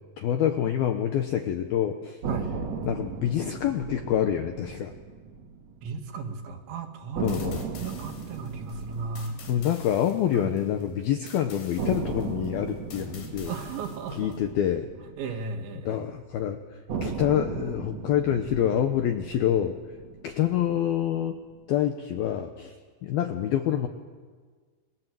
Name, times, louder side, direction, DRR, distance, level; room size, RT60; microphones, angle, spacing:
voice 1, 0.2-2.2 2.8-4.9 7.2-7.6 9.5-13.5 14.1-14.9 15.9-16.6 17.0-19.8 20.2-21.4 21.7-22.7 23.0-23.9, left 10 dB, 80° left, 7 dB, 2.2 m, -26 dB
sound 1, 2.2-6.3 6.6-6.7 7.1-11.2 11.8-16.1 16.9-21.3, right 5 dB, 45° right, 2.5 m, -37 dB
voice 2, 5.8-9.3 10.3-10.5 13.5-14.4 15.2-16.0, right 4 dB, 70° right, 5 dB, 4.0 m, -35 dB
sound 2, 7.3-14.4, left 5 dB, 55° left, 5.1 m, -49 dB
29.5 x 21.5 x 7.7 m, 1.5 s
omnidirectional pair, 5.8 m